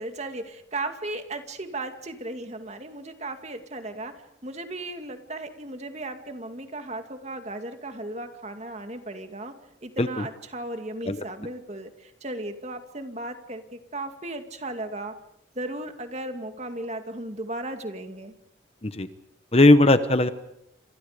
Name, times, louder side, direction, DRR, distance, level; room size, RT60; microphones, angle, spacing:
voice 1, 0.0-4.1 4.4-9.5 9.8-15.1 15.6-18.3, right 2 dB, 35° right, 7 dB, 2.3 m, -36 dB
voice 2, 19.5-20.3, left 2 dB, 30° left, 11 dB, 1.1 m, -18 dB
30.0 x 27.5 x 5.1 m, 0.81 s
head